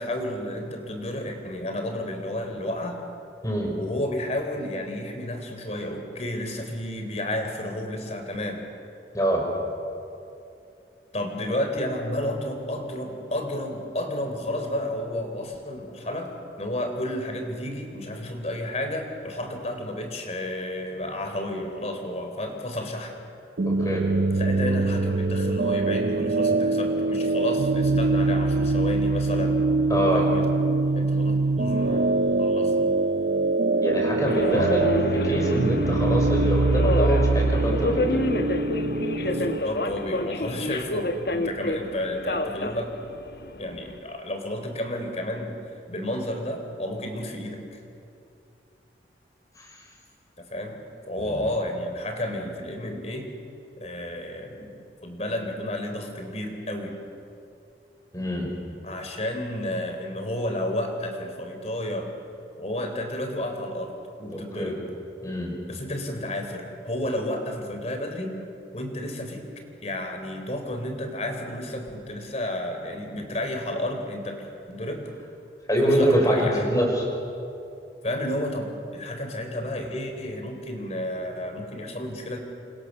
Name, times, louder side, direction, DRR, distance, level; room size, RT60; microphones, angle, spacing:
voice 1, 0.0-3.0 3.7-8.7 11.1-23.1 24.3-30.4 30.9-32.7 34.3-34.7 39.2-42.9 43.6-45.6 45.9-47.8 50.4-50.8 51.1-53.3 53.8-57.0 58.8-62.1 62.6-64.8 65.7-68.4 68.7-69.4 69.8-75.1 75.8-76.7 78.0-82.4, left 1 dB, 40° left, 4 dB, 4.0 m, -31 dB
voice 2, 3.4-3.7 9.1-9.4 23.6-24.0 29.9-30.2 33.8-34.9 35.1-38.2 49.6-49.7 51.2-51.3 58.1-58.5 64.3-64.7 65.2-65.5 75.7-77.1, equal, 20° left, 0 dB, 5.8 m, -25 dB
sound 1, 23.6-39.6, right 3 dB, 65° right, 0.6 m, -23 dB
Subway metro underground, 34.3-44.0, left 1 dB, 60° left, 1.4 m, -29 dB
29.5 x 25.0 x 6.8 m, 2.6 s
head